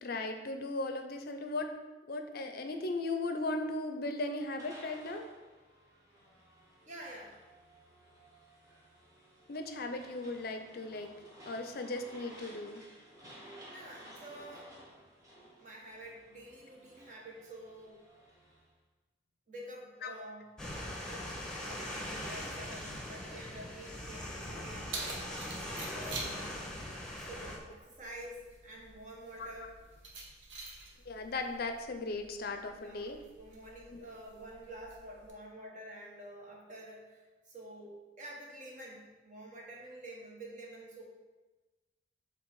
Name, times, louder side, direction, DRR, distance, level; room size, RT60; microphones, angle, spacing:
voice 1, 0.0-1.8 2.1-5.3 9.5-11.1 11.4-12.8 20.0-20.1 29.4-29.5 31.1-33.2 33.9-34.0, left 2 dB, 55° left, 6 dB, 0.6 m, -37 dB
sound 1, 4.5-18.7, right 1 dB, 20° right, 1.6 m, -56 dB
voice 2, 6.9-7.4 13.7-14.7 15.6-18.0 19.5-25.0 25.6-26.4 27.2-29.7 32.8-41.0, right 1 dB, 40° right, -2 dB, 1.5 m, -49 dB
sound 2, 20.6-27.6, left 1 dB, 5° left, 1.1 m, -41 dB
Keys jangling, 24.4-35.3, right 3 dB, 80° right, 1.1 m, -48 dB
7.4 x 3.8 x 4.7 m, 1.2 s
head